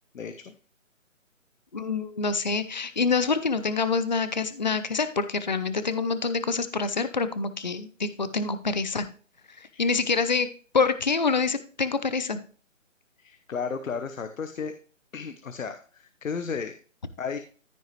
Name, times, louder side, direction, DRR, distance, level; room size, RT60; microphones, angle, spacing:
voice 1, 0.1-0.5 9.7-9.8 13.2-14.7 15.1-16.7 17.2-17.4, left 5 dB, 75° left, 9 dB, 1.0 m, -34 dB
voice 2, 1.7-9.1 9.6-10.5 10.7-12.4, left 4 dB, 35° left, 13 dB, 0.6 m, -26 dB
14.0 x 5.5 x 3.2 m, 0.41 s
hypercardioid pair, 170°, 40 cm